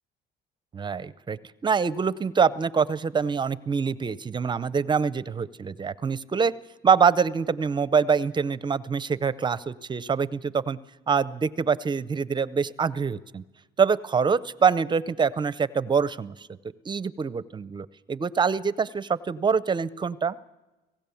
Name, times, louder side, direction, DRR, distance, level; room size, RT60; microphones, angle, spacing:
voice 1, 0.7-6.5 6.8-10.8 11.1-13.4 13.8-16.5 16.9-20.4, right 6 dB, 25° right, 17 dB, 0.6 m, -25 dB
25.5 x 16.5 x 7.0 m, 1.1 s
cardioid pair, 110°, 17 cm